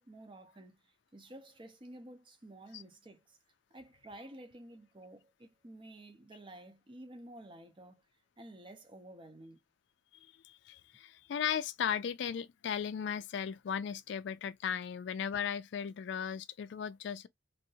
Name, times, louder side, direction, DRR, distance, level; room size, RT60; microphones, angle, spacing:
voice 1, 0.0-3.4 3.7-8.0 8.4-9.6, right 1 dB, 25° right, 0.5 m, -52 dB
voice 2, 10.2-17.3, left 8 dB, 65° left, 0.3 m, -36 dB
2.7 x 2.0 x 2.7 m
head